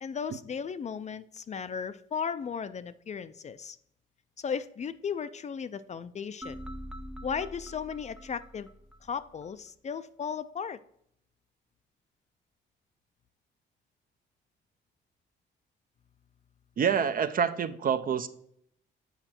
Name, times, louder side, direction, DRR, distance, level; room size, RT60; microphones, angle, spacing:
voice 1, 0.0-3.8 4.4-6.6 7.2-8.7 9.0-10.8, left 6 dB, 35° left, 0.4 m, -36 dB
sound 1, 6.4-9.5, equal, 5° right, 0.6 m, -44 dB
voice 2, 16.8-18.3, right 7 dB, 45° right, 0.6 m, -27 dB
8.0 x 4.9 x 4.4 m
cardioid pair, 90°, 20 cm